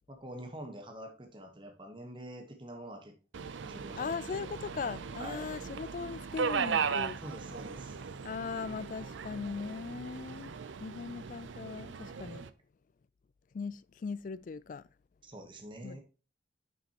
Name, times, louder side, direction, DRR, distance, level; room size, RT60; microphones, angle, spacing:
voice 1, 0.1-3.1 3.6-4.1 5.2-5.5 7.2-8.0 15.2-16.0, right 1 dB, 25° right, 1.1 m, -45 dB
Subway metro underground, 3.3-12.5, right 6 dB, 85° right, 0.5 m, -38 dB
voice 2, 4.0-7.2 8.2-12.5 13.5-14.9 15.8-16.0, left 5 dB, 45° left, 0.3 m, -39 dB
7.5 x 5.7 x 2.9 m
head